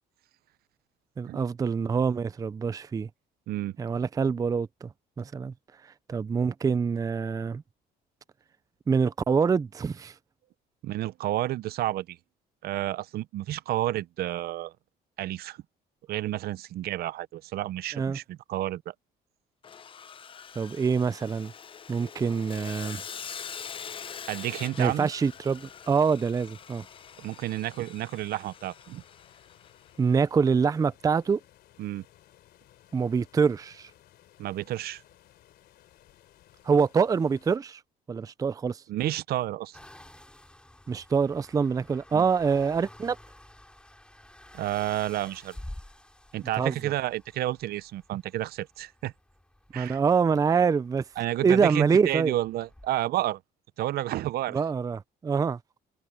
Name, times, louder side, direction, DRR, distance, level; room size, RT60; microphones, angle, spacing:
voice 1, 1.2-3.1 3.8-4.9 5.2-5.5 6.1-7.6 8.9-10.1 17.9-18.2 20.6-21.5 21.9-23.0 24.8-26.8 30.0-31.4 32.9-33.9 36.7-37.8 38.1-38.8 40.9-43.2 46.6-46.7 49.7-51.0 51.4-52.3 54.5-55.6, right 5 dB, 20° right, 0.4 m, -25 dB
voice 2, 10.8-12.2 12.6-14.7 15.2-15.6 16.1-18.9 24.3-25.1 27.2-29.0 31.8-32.0 34.4-35.0 38.9-39.8 42.1-42.2 44.5-45.6 46.3-49.1 49.7-50.0 51.2-53.4 53.8-54.6, right 14 dB, 65° right, 0.7 m, -31 dB
Sawing, 19.6-29.9, left 7 dB, 30° left, 0.6 m, -44 dB
sound 1, 24.7-37.6, left 13 dB, 70° left, 3.4 m, -59 dB
sound 2, 39.7-52.9, left 1 dB, 5° left, 6.7 m, -50 dB
cardioid pair, 110°, 17 cm